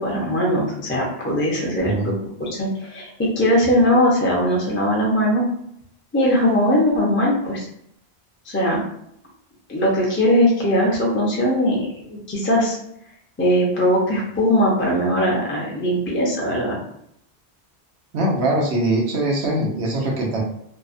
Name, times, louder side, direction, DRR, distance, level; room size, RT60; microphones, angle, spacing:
voice 1, 0.0-2.1 2.4-5.5 6.1-7.6 8.5-8.8 9.7-12.8 13.4-16.8, equal, 15° left, -4 dB, 0.5 m, -20 dB
voice 2, 18.1-20.4, right 1 dB, 85° right, -1 dB, 1.0 m, -22 dB
2.8 x 2.1 x 2.5 m, 0.74 s
omnidirectional pair, 1.1 m